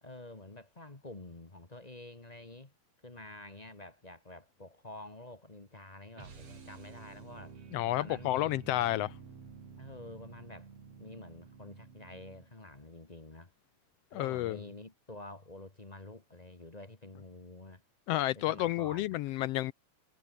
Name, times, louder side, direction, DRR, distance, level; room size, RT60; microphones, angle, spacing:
voice 1, 0.0-2.7 3.0-7.6 7.9-8.7 9.8-10.7 11.0-13.5 14.1-17.8 18.3-19.1, left 2 dB, 20° left, 1.4 m, -49 dB
sound 1, 6.1-12.6, right 5 dB, 60° right, 4.4 m, -51 dB
voice 2, 7.7-9.1 14.1-14.6 18.1-19.7, left 15 dB, 80° left, 1.4 m, -31 dB
omnidirectional pair, 3.3 m